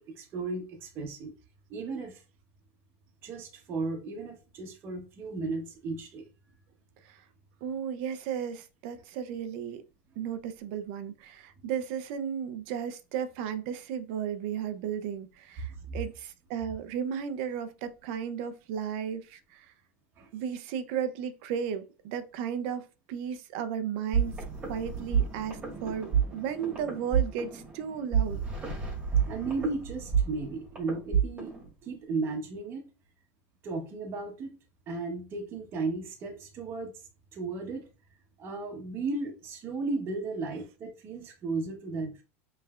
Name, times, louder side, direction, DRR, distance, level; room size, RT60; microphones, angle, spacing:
voice 1, 0.0-1.3 1.7-2.2 3.2-6.3 15.8-16.0 20.2-20.3 29.2-31.5 31.8-32.9 33.6-34.6 34.9-36.9 37.3-37.9 38.4-42.2, right 3 dB, 35° right, 1.0 m, -35 dB
voice 2, 7.6-9.8 10.2-19.7 20.3-28.4, right 8 dB, 60° right, 0.6 m, -34 dB
sound 1, 24.1-31.7, right 7 dB, 20° right, 1.6 m, -30 dB
5.5 x 3.3 x 2.4 m
supercardioid pair, 140°, 7 cm